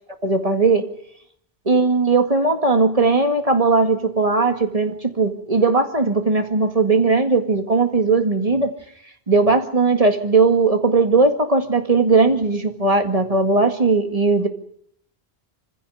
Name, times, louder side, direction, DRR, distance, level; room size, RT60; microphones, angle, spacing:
voice 1, 0.2-0.9 1.7-8.7 9.3-14.5, right 3 dB, 35° right, 6 dB, 2.1 m, -18 dB
24.5 x 16.0 x 9.2 m, 0.67 s
omnidirectional pair, 1.1 m